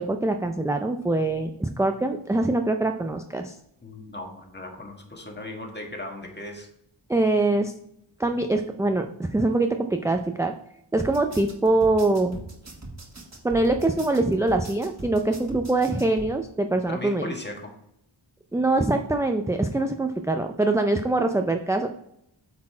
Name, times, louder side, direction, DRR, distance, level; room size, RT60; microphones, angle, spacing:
voice 1, 0.0-3.5 7.1-7.7 8.2-10.5 10.9-12.4 13.4-17.3 18.5-21.9, right 2 dB, 5° right, 5 dB, 0.3 m, -23 dB
voice 2, 3.8-6.7 16.9-17.7, left 1 dB, 20° left, 2 dB, 1.6 m, -37 dB
sound 1, 11.0-16.3, right 2 dB, 30° right, 1.5 m, -41 dB
8.4 x 4.2 x 4.4 m, 0.77 s
wide cardioid pair, 75°, 50 cm